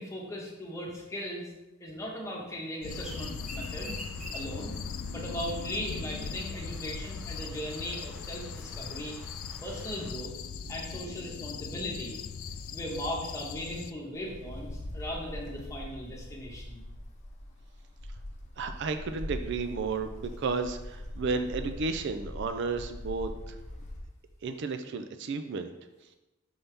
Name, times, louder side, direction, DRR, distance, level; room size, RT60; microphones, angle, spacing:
voice 1, 0.0-1.5 1.8-4.0 4.3-4.8 5.1-9.1 9.6-10.3 10.7-12.2 12.7-16.8, equal, 15° left, -3 dB, 1.2 m, -38 dB
sound 1, 2.8-13.9, left 5 dB, 75° left, 0.4 m, -39 dB
sound 2, 2.9-10.1, equal, ahead, 0.8 m, -47 dB
Wind, 14.1-24.2, left 1 dB, 35° left, 0.7 m, -42 dB
voice 2, 18.6-23.6 24.4-25.7, right 4 dB, 55° right, 8 dB, 0.4 m, -33 dB
5.6 x 5.4 x 3.4 m, 1.0 s
head